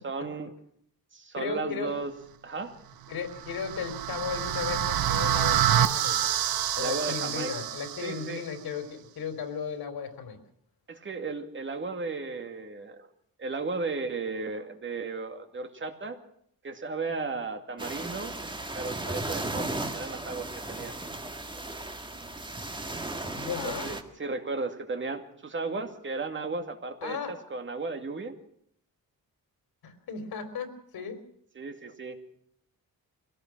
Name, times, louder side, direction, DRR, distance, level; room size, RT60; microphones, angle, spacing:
voice 1, 0.0-0.5 1.1-2.1 2.4-2.7 6.8-7.5 8.0-8.4 10.9-13.1 13.4-16.2 16.6-18.3 18.7-21.0 23.6-28.3 31.5-32.2, right 3 dB, 35° right, 6 dB, 2.3 m, -35 dB
voice 2, 1.3-2.0 3.1-6.2 6.7-10.4 23.4-23.9 27.0-27.3 29.8-31.2, left 6 dB, 85° left, 8 dB, 4.1 m, -35 dB
sound 1, 3.2-8.3, right 11 dB, 90° right, 1.1 m, -27 dB
sound 2, 17.8-24.0, right 2 dB, 15° right, 1.8 m, -36 dB
24.0 x 17.5 x 6.2 m, 0.66 s
wide cardioid pair, 155°, 36 cm